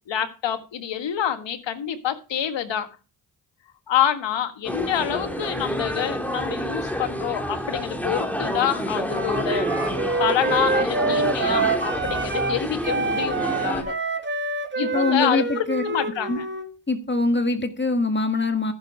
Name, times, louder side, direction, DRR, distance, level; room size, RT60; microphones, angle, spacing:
voice 1, 0.1-2.9 3.9-14.0 14.8-16.4, left 10 dB, 75° left, 1.7 m, -27 dB
sound 1, 4.6-13.8, equal, 5° left, 2.8 m, -28 dB
Wind instrument woodwind instrument, 9.0-12.6 12.8-16.7, right 4 dB, 25° right, 1.9 m, -26 dB
voice 2, 14.8-15.8 16.3-16.4 16.9-18.7, left 3 dB, 25° left, 1.8 m, -23 dB
14.5 x 7.0 x 4.9 m
supercardioid pair, 55°, 44 cm